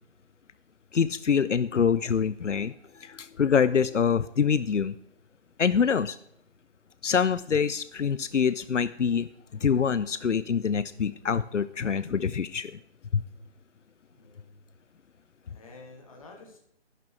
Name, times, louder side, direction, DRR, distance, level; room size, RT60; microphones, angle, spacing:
voice 1, 0.9-4.9 5.6-6.2 7.0-12.7 13.1-13.2, left 6 dB, 90° left, 15 dB, 0.6 m, -25 dB
voice 2, 14.1-14.6 15.4-16.6, left 3 dB, 30° left, 2 dB, 1.9 m, -50 dB
11.5 x 11.0 x 3.1 m, 0.73 s
figure-of-eight pair, 155°, 35 cm